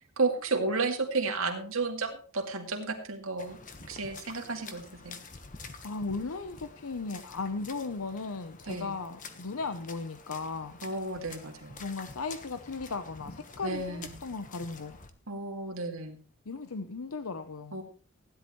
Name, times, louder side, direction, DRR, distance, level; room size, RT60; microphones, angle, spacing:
voice 1, 0.2-3.6 3.9-5.2 8.7-8.9 10.8-11.8 13.6-14.1 15.3-16.2 17.7-17.8, right 3 dB, 75° right, 3 dB, 2.3 m, -32 dB
sound 1, 3.4-15.1, left 4 dB, 40° left, 1.2 m, -48 dB
voice 2, 5.8-10.8 11.8-15.0 16.5-17.8, left 4 dB, 90° left, 9 dB, 0.8 m, -36 dB
16.5 x 10.5 x 3.1 m, 0.38 s
head